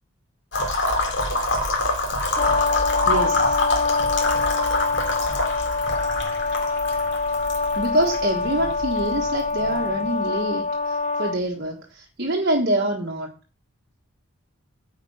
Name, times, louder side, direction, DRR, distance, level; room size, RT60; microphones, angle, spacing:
sound 1, 0.5-10.3, left 2 dB, 55° left, 2.5 m, -27 dB
Bass drum, 0.6-6.2, right 1 dB, 25° right, 1.6 m, -37 dB
Brass instrument, 2.4-11.4, left 3 dB, 35° left, 0.5 m, -25 dB
voice 1, 3.0-3.6 7.8-13.3, right 1 dB, 50° right, 1.5 m, -25 dB
10.0 x 5.3 x 6.5 m
head